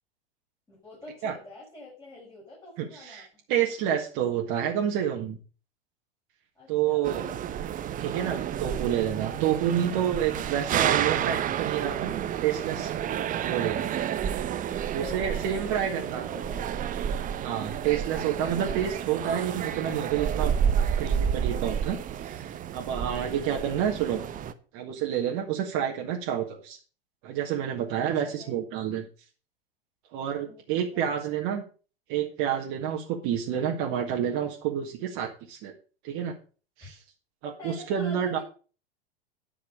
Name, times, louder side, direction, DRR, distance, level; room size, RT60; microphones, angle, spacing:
voice 1, 0.7-3.4 6.6-7.3 14.9-16.7 28.0-28.6 30.4-31.4 36.8-36.9 37.6-38.4, left 2 dB, 15° left, -5 dB, 5.9 m, -46 dB
voice 2, 2.8-5.4 6.7-7.2 8.0-12.9 13.4-13.9 14.9-16.2 17.4-20.5 21.0-22.4 22.7-24.2 24.7-26.8 27.2-29.1 30.1-31.6 32.1-35.7 36.0-36.3 36.8-37.0 37.4-38.4, right 9 dB, 45° right, 0 dB, 1.8 m, -29 dB
sound 1, 7.0-24.5, right 9 dB, 25° right, 0.9 m, -30 dB
10.0 x 6.1 x 6.5 m, 0.37 s
hypercardioid pair, 95°, 30 cm